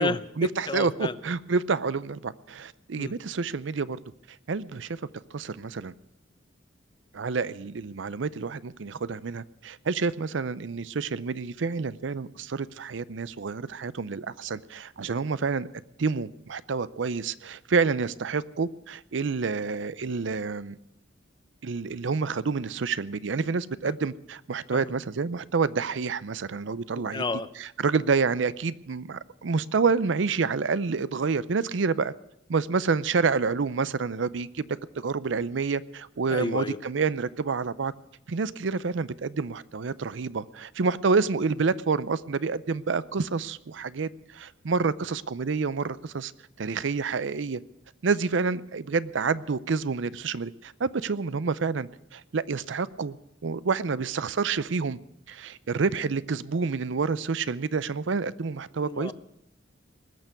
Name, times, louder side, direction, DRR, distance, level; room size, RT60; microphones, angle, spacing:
voice 1, 0.0-4.0 4.5-5.0 5.3-5.9 7.1-15.7 16.0-20.8 21.6-27.2 27.6-32.1 32.5-34.6 35.0-37.9 38.3-46.3 46.6-47.6 48.0-53.2 53.4-55.0 55.3-59.1, right 4 dB, 70° right, 17 dB, 0.5 m, -28 dB
voice 2, 0.7-1.2 3.0-3.1 23.8-23.9 24.7-24.8 26.9-27.5 36.3-36.8 58.8-59.1, left 3 dB, 25° left, 15 dB, 0.5 m, -31 dB
20.0 x 6.8 x 9.5 m, 0.79 s
head